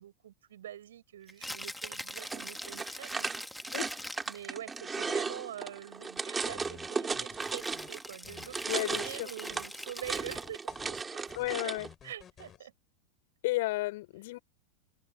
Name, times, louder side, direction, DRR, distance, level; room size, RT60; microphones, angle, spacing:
voice 1, 0.0-3.7 4.2-10.6 10.8-11.7 12.0-12.7, right 11 dB, 60° right, 6.9 m, -45 dB
Rattle (instrument), 1.3-4.5 7.4-10.6, left 1 dB, ahead, 2.4 m, -43 dB
sound 1, 2.1-8.1 8.4-11.9, right 4 dB, 15° right, 3.3 m, -36 dB
sound 2, 6.2-7.9 8.2-9.2 9.5-9.7 10.0-12.6, left 9 dB, 25° left, 5.7 m, -53 dB
voice 2, 8.7-9.3 11.4-11.9 13.4-14.4, left 19 dB, 50° left, 4.0 m, -32 dB
open air
figure-of-eight pair, 90°, 0 cm